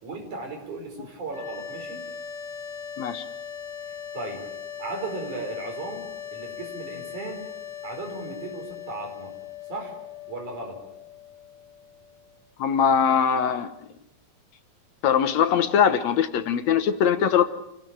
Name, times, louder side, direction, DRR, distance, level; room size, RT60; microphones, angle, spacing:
voice 1, 0.0-2.1 4.1-4.4 4.8-7.4 7.8-9.3 9.7-9.9 10.3-10.8, right 2 dB, 75° right, 3 dB, 6.4 m, -36 dB
sound 1, 1.3-12.4, left 8 dB, 10° left, 4.3 m, -39 dB
voice 2, 12.6-13.7 15.0-17.4, left 8 dB, 70° left, 10 dB, 2.2 m, -21 dB
28.5 x 16.5 x 8.8 m, 0.86 s
omnidirectional pair, 3.5 m